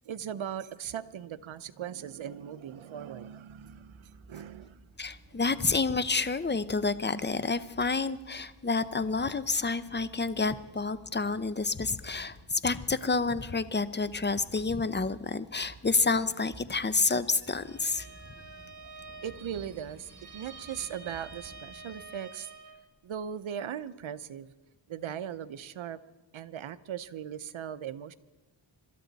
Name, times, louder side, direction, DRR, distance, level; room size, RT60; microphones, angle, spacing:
voice 1, 0.0-4.8 19.2-22.5 23.0-24.5 24.9-26.0 26.3-28.1, right 9 dB, 75° right, 14 dB, 0.8 m, -39 dB
sound 1, 3.5-22.1, right 2 dB, 35° right, 4.5 m, -54 dB
voice 2, 5.0-18.1, left 4 dB, 20° left, 14 dB, 0.8 m, -29 dB
Bowed string instrument, 17.6-22.8, right 4 dB, 50° right, 3.5 m, -49 dB
26.5 x 13.0 x 4.1 m, 1.1 s
cardioid pair, 55°, 47 cm